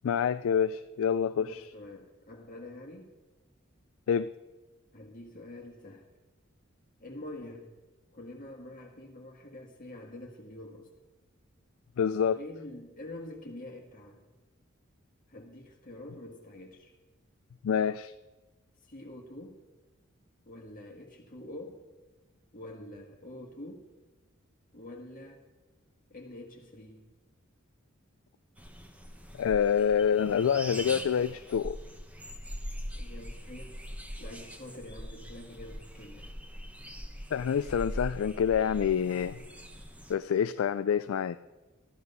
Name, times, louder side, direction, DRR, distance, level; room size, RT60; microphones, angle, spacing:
voice 1, 0.0-1.6 4.1-4.3 12.0-12.4 17.6-18.1 29.3-31.8 37.3-39.4 40.1-41.4, left 7 dB, 80° left, 12 dB, 0.3 m, -27 dB
voice 2, 1.4-3.1 4.9-6.1 7.0-7.7 8.1-10.9 12.4-14.2 15.3-16.9 18.8-19.6 20.4-21.9 22.5-23.8 24.7-25.4 26.1-27.1 32.9-33.8 34.2-36.4, left 1 dB, 45° left, 1 dB, 1.5 m, -46 dB
sound 1, 28.6-40.1, equal, 5° right, 1.1 m, -42 dB
14.0 x 13.0 x 5.5 m, 1.2 s
head